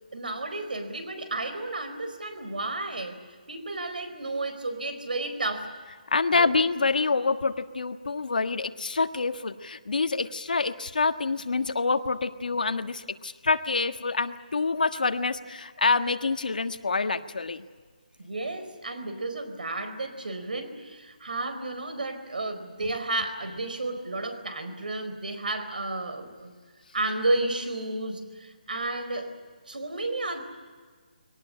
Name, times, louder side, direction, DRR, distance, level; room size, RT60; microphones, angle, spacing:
voice 1, 0.1-3.2 3.5-5.7 6.3-6.6 18.2-26.5 26.9-29.4 29.7-30.4, right 2 dB, 90° right, 9 dB, 4.6 m, -32 dB
voice 2, 6.1-17.6, left 4 dB, 75° left, 8 dB, 1.5 m, -26 dB
23.0 x 18.5 x 10.0 m, 1.5 s
hypercardioid pair, 175°, 5 cm